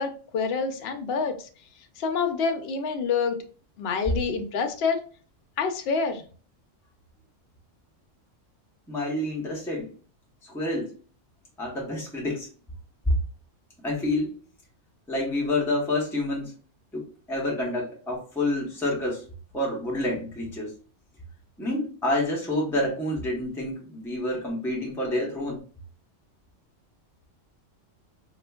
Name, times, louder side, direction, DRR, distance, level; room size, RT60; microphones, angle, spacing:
voice 1, 0.0-1.3 2.0-3.4 3.8-5.0 5.6-6.2, left 5 dB, 65° left, 6 dB, 0.7 m, -27 dB
voice 2, 8.9-9.9 10.4-10.9 11.6-12.5 13.1-13.2 13.8-14.3 15.1-16.5 16.9-19.2 19.5-20.7 21.6-25.6, left 1 dB, 5° left, -2 dB, 0.6 m, -28 dB
4.2 x 2.4 x 2.2 m, 0.39 s
omnidirectional pair, 1.3 m